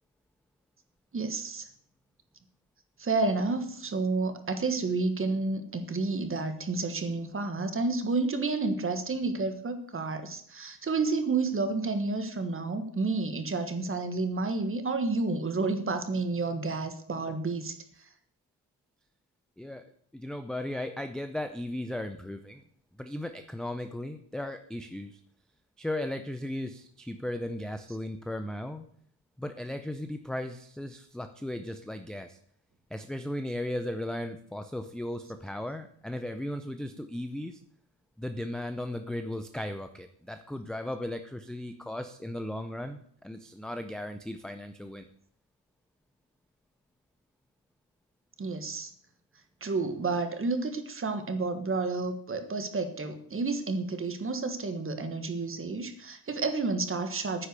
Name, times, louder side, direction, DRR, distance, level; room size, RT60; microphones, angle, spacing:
voice 1, 1.1-1.7 3.0-17.8 48.4-48.9 49.6-57.5, right 3 dB, 25° right, 8 dB, 1.4 m, -30 dB
voice 2, 19.6-19.9 20.1-22.6 23.0-25.2 25.8-28.8 29.4-32.4 32.9-37.6 38.2-45.1, left 1 dB, ahead, 7 dB, 0.5 m, -36 dB
10.0 x 9.9 x 6.8 m, 0.63 s
wide cardioid pair, 165°, 47 cm